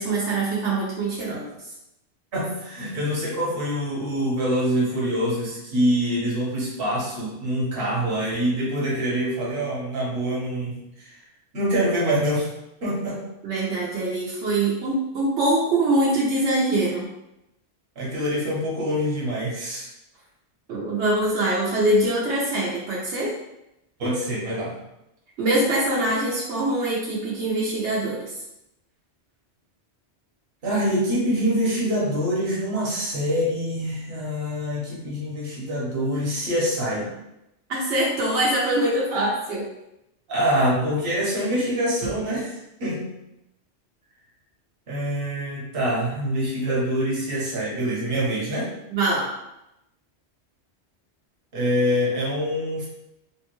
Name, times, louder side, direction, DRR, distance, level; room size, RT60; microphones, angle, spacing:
voice 1, 0.0-1.5 13.4-17.1 20.7-23.3 25.4-28.3 37.7-39.7 48.9-49.3, right 1 dB, 80° right, -5 dB, 1.0 m, -23 dB
voice 2, 2.3-11.2 11.5-12.5 12.8-13.2 18.0-19.9 24.0-24.8 30.6-37.1 40.3-43.1 44.9-48.7 51.5-52.9, equal, 55° right, -4 dB, 1.1 m, -25 dB
3.5 x 2.2 x 2.9 m, 0.89 s
omnidirectional pair, 1.1 m